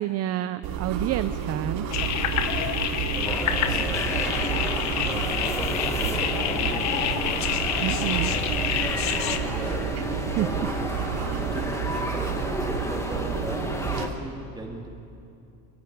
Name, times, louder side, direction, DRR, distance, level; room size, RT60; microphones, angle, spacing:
voice 1, 0.0-1.9 7.8-8.3 10.4-10.5, right 13 dB, 40° right, 13 dB, 0.5 m, -28 dB
sound 1, 0.6-14.0, right 7 dB, 70° right, 2.8 m, -30 dB
sound 2, 1.9-9.4, left 9 dB, 45° left, 1.2 m, -28 dB
voice 2, 2.2-2.8 3.1-4.7 5.0-7.8 8.1-14.9, right 2 dB, 10° right, 1 dB, 2.4 m, -38 dB
sound 3, 3.2-14.1, left 1 dB, 10° left, 1.5 m, -33 dB
24.0 x 15.0 x 9.6 m, 2.7 s
cardioid pair, 145°, 38 cm